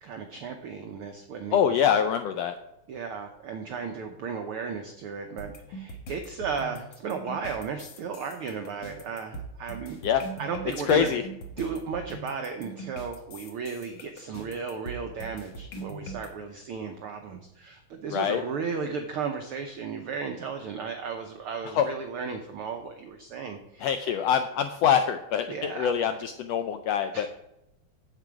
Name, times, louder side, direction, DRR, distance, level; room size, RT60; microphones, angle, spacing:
voice 1, 0.0-1.7 2.9-10.0 10.4-11.1 11.5-24.1 25.5-26.2 27.1-27.3, right 5 dB, 85° right, 5 dB, 1.2 m, -35 dB
voice 2, 1.5-2.6 10.0-10.2 10.9-11.2 18.1-18.4 21.7-21.9 23.8-27.3, left 8 dB, 85° left, 8 dB, 1.4 m, -24 dB
sound 1, 5.4-16.3, right 2 dB, 50° left, 1.7 m, -41 dB
9.0 x 7.5 x 4.7 m, 0.86 s
omnidirectional pair, 3.4 m